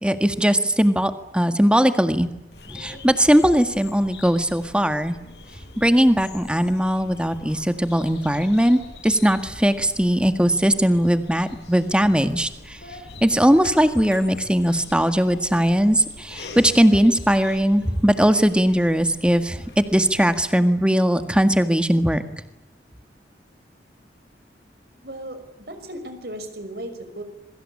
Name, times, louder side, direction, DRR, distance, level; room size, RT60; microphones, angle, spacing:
voice 1, 0.0-2.3 2.7-5.2 5.8-12.8 13.2-22.2, equal, 5° right, 9 dB, 1.8 m, -19 dB
Bird vocalization bird call bird song, 2.5-20.4, left 2 dB, 75° left, 7.2 m, -43 dB
voice 2, 25.0-25.4 25.7-27.2, right 1 dB, 60° right, 8 dB, 5.8 m, -35 dB
27.0 x 24.0 x 8.5 m, 0.91 s
head